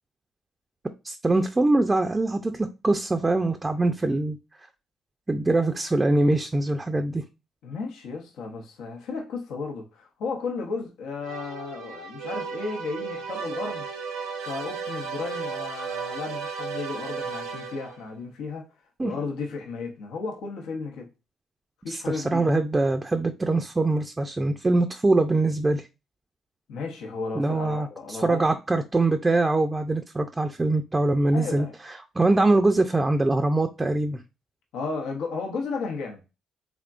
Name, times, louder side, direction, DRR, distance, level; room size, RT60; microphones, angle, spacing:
voice 1, 1.0-4.4 5.3-7.2 19.0-19.1 21.9-25.8 27.3-34.2, right 2 dB, 20° right, 0.4 m, -23 dB
voice 2, 7.6-13.9 14.4-18.7 19.0-21.1 21.8-22.5 26.7-28.5 31.3-31.7 34.7-36.2, left 4 dB, 85° left, 0.8 m, -34 dB
sound 1, 11.2-18.1, right 5 dB, 90° right, 0.8 m, -34 dB
3.5 x 3.5 x 2.4 m
cardioid pair, 90°, 0 cm